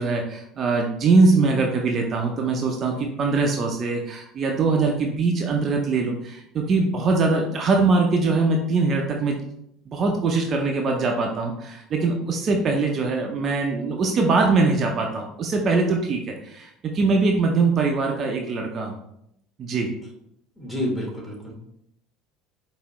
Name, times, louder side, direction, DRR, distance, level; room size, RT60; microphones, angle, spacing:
voice 1, 0.0-9.4 9.9-19.0 19.6-19.9, right 3 dB, 40° right, 1 dB, 0.6 m, -22 dB
voice 2, 20.6-21.5, left 1 dB, 10° left, -3 dB, 1.6 m, -29 dB
4.9 x 2.7 x 3.1 m, 0.75 s
figure-of-eight pair, 65°, 0 cm